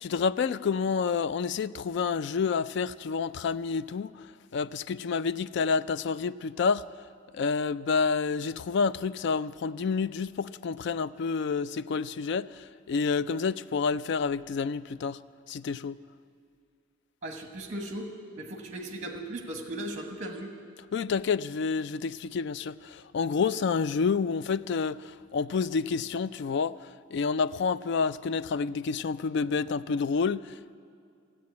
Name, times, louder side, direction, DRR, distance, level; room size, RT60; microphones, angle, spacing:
voice 1, 0.0-4.3 4.5-6.9 7.3-15.2 15.5-16.0 20.9-30.8, left 5 dB, 55° left, 0.3 m, -29 dB
voice 2, 17.2-18.1 18.4-20.5, right 1 dB, 35° right, 1.2 m, -37 dB
14.0 x 8.5 x 9.5 m
head